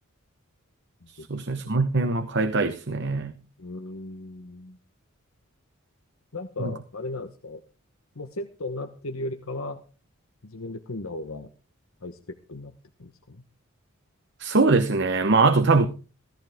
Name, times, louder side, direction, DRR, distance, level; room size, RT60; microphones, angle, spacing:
voice 1, 1.3-3.3 6.6-6.7 14.4-15.9, right 3 dB, 55° right, 9 dB, 0.9 m, -22 dB
voice 2, 3.6-4.8 6.3-7.6 8.1-9.8 10.4-11.5 12.0-12.7 13.0-13.4, left 2 dB, 75° left, 7 dB, 1.1 m, -36 dB
16.5 x 14.5 x 3.5 m, 0.36 s
head